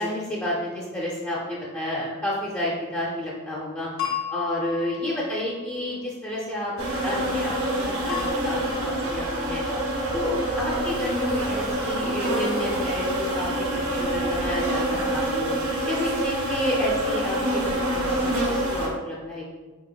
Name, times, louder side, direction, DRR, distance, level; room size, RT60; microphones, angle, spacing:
voice 1, 0.0-3.9 4.3-9.6 10.1-15.5 15.9-19.5, left 1 dB, 10° left, -7 dB, 0.5 m, -30 dB
sound 1, 4.0-5.5 8.1-8.3, left 8 dB, 75° left, 1.1 m, -32 dB
sound 2, 6.8-18.9, right 1 dB, 80° right, 0.9 m, -26 dB
4.6 x 4.0 x 2.2 m, 1.4 s
head